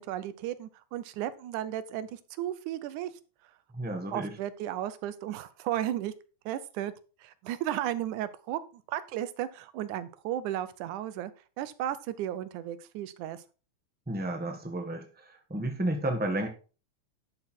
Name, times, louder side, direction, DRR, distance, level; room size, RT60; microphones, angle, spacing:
voice 1, 0.0-3.1 4.1-6.1 6.5-6.9 7.2-11.3 11.6-13.4, right 12 dB, 90° right, 14 dB, 2.3 m, -34 dB
voice 2, 3.7-4.4 14.1-16.5, right 1 dB, 10° right, 4 dB, 0.6 m, -32 dB
11.5 x 6.3 x 4.4 m, 0.35 s
omnidirectional pair, 3.4 m